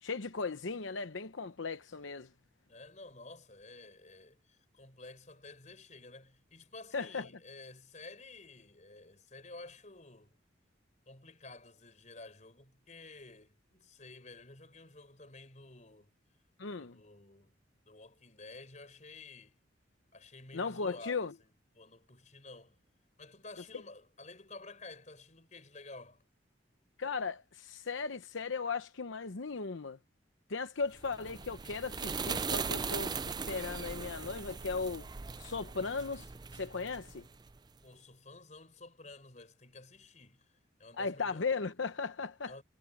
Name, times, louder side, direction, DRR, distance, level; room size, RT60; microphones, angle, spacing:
voice 1, 0.0-2.3 6.9-7.3 16.6-17.0 20.5-21.3 27.0-30.0 30.5-35.1 35.4-37.3 41.0-42.6, left 4 dB, 85° left, 0.9 m, -37 dB
voice 2, 2.7-10.4 11.1-16.1 16.8-17.5 17.8-19.6 20.1-21.3 21.7-22.8 23.2-26.2 37.8-40.5 40.8-41.4 42.5-42.6, left 3 dB, 40° left, 4.6 m, -52 dB
sound 1, 31.0-37.6, right 5 dB, 20° right, 0.4 m, -39 dB
head